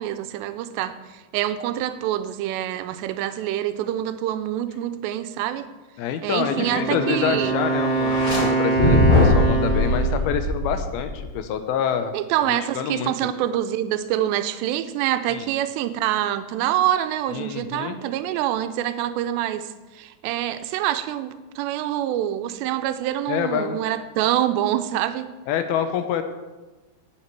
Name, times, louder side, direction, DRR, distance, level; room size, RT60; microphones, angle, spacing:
voice 1, 0.0-5.7 6.2-7.6 12.1-19.7 20.0-25.3, right 12 dB, 85° right, 10 dB, 2.8 m, -26 dB
voice 2, 6.0-12.1 12.5-13.1 15.3-15.5 17.3-18.0 23.3-23.8 25.5-26.2, left 8 dB, 75° left, 8 dB, 2.4 m, -26 dB
Wind instrument woodwind instrument, 6.4-10.3, right 3 dB, 45° left, 3.3 m, -24 dB
sound 1, 8.0-8.4 8.8-11.3, left 1 dB, 20° left, 4.7 m, -20 dB
19.0 x 7.2 x 4.6 m, 1.2 s
omnidirectional pair, 5.0 m